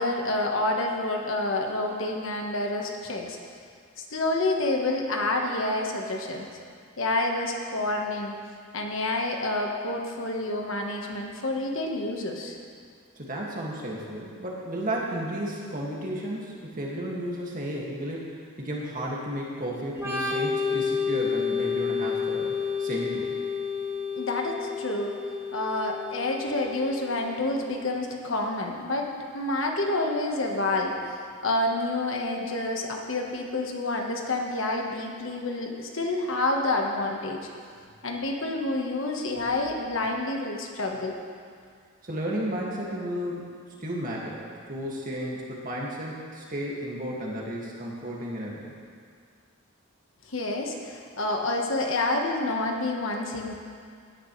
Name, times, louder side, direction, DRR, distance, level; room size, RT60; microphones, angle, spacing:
voice 1, 0.0-3.4 4.0-6.5 7.0-8.4 8.7-12.6 24.1-25.1 25.5-37.4 38.0-41.1 50.3-53.5, left 2 dB, 65° left, 1 dB, 1.4 m, -28 dB
voice 2, 13.2-22.5 22.8-23.4 42.0-48.7, equal, 40° right, -3 dB, 2.1 m, -33 dB
Organ, 19.9-27.5, left 6 dB, 10° right, 1.5 m, -30 dB
17.0 x 10.5 x 3.3 m, 2.2 s
head